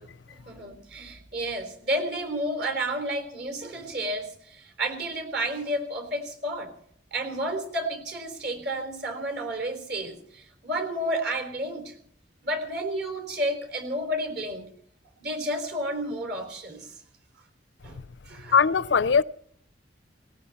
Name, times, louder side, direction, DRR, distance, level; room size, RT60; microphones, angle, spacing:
voice 1, 0.0-6.7 7.1-11.9 12.4-14.7 15.2-17.0 17.8-18.0 18.3-18.6, right 1 dB, 65° right, 3.7 m, -31 dB
voice 2, 18.5-19.2, left 6 dB, 90° left, 0.5 m, -20 dB
18.5 x 18.5 x 4.2 m
head